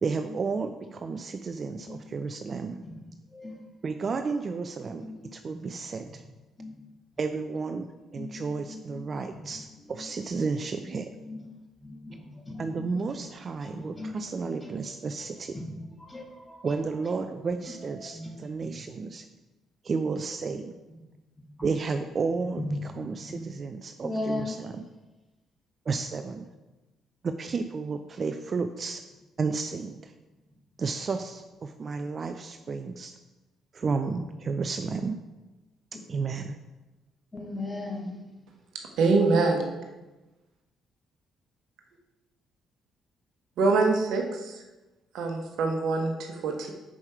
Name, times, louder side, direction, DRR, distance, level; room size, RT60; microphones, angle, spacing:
voice 1, 0.0-2.8 3.8-6.2 7.2-11.1 12.6-15.6 16.6-19.2 19.8-20.7 21.6-24.9 25.9-26.4 27.2-29.0 29.4-30.1 30.8-33.2 33.7-35.2 35.9-36.6, right 4 dB, 45° right, 7 dB, 0.4 m, -32 dB
voice 2, 8.7-9.0 11.2-11.4 11.8-12.2 12.5-12.7 13.6-14.1 15.5-15.6 16.1-16.6 18.1-18.3 22.6-22.7 23.0-23.4 24.0-24.5 37.3-38.2, left 2 dB, 20° left, 1 dB, 1.7 m, -36 dB
voice 3, 39.0-39.6 43.6-44.5 45.1-46.7, right 3 dB, 70° right, 3 dB, 1.0 m, -24 dB
6.3 x 5.3 x 4.6 m, 1.1 s
hypercardioid pair, 45°, 0 cm